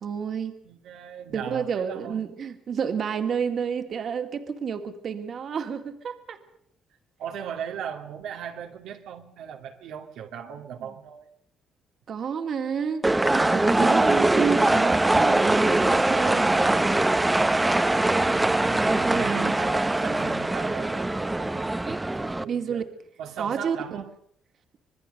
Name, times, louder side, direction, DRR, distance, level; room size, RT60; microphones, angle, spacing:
voice 1, 0.0-0.6 1.3-6.4 10.8-10.9 12.1-16.9 19.1-19.6 22.5-22.8 23.4-24.0, right 7 dB, 55° right, 2.4 m, -30 dB
voice 2, 0.6-2.2 7.2-11.3 18.3-22.8 23.2-24.1, right 8 dB, 85° right, 2.3 m, -38 dB
sound 1, 13.0-22.4, right 2 dB, 15° right, 1.1 m, -22 dB
26.5 x 20.5 x 6.7 m
cardioid pair, 90°, 0 cm